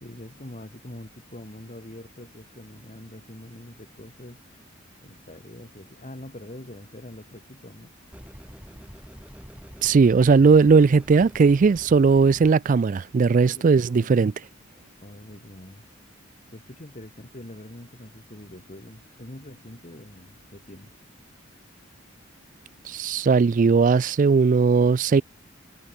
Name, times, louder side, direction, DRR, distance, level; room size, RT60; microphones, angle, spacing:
voice 1, 0.0-4.4 5.0-7.9 13.5-14.3 15.0-15.8 16.5-20.9, left 1 dB, 35° left, 2.6 m, -44 dB
sound 1, 8.1-12.5, equal, 5° right, 1.4 m, -45 dB
voice 2, 9.8-14.3 22.9-25.2, right 4 dB, 40° right, 0.3 m, -18 dB
head